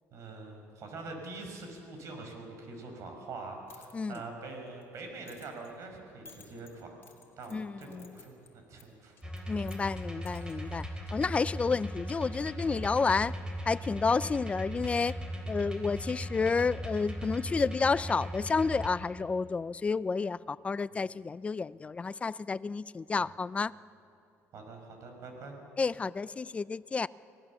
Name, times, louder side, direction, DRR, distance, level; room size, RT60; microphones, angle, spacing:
voice 1, 0.1-7.0 7.4-9.5 10.2-10.5 15.7-16.0 20.9-21.0 24.5-25.6, right 3 dB, 60° right, 4 dB, 5.1 m, -45 dB
sound 1, 3.4-11.4, left 4 dB, 45° left, 3.0 m, -60 dB
voice 2, 7.5-8.2 9.5-13.3 13.6-15.2 15.5-23.7 25.8-27.1, left 4 dB, 20° left, 18 dB, 0.4 m, -30 dB
sound 2, 9.2-18.9, equal, 15° right, 3.3 m, -38 dB
25.5 x 18.5 x 7.2 m, 2.7 s
cardioid pair, 110°, 6 cm